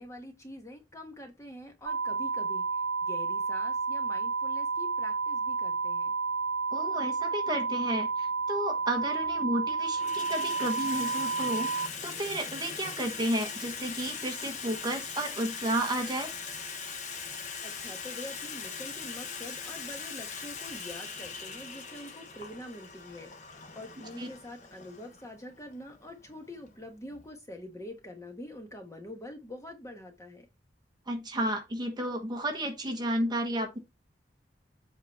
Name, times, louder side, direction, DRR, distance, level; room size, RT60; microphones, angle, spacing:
voice 1, 0.0-6.2 17.6-30.5, left 1 dB, 15° left, 1.3 m, -45 dB
sound 1, 1.9-11.9, right 4 dB, 75° right, 1.7 m, -31 dB
voice 2, 6.7-16.3 24.2-24.3 31.1-33.8, right 1 dB, 25° right, 1.3 m, -32 dB
Water tap faucet / Sink (filling or washing), 7.9-8.0 9.0-9.4 9.7-27.3, left 5 dB, 40° left, 1.1 m, -41 dB
7.9 x 4.0 x 4.3 m
head